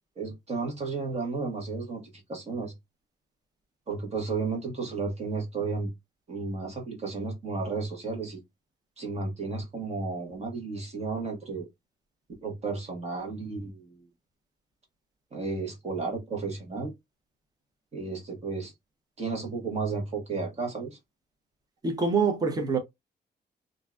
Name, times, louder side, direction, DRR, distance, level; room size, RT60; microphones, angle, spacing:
voice 1, 0.2-2.0 2.3-2.7 3.9-5.9 6.3-8.4 9.0-11.7 12.4-14.1 15.3-16.9 17.9-18.7 19.2-21.0, right 4 dB, 35° right, 1.2 m, -33 dB
voice 2, 21.8-22.8, right 4 dB, 20° right, 0.7 m, -25 dB
3.6 x 2.6 x 2.3 m
wide cardioid pair, 165°, 18 cm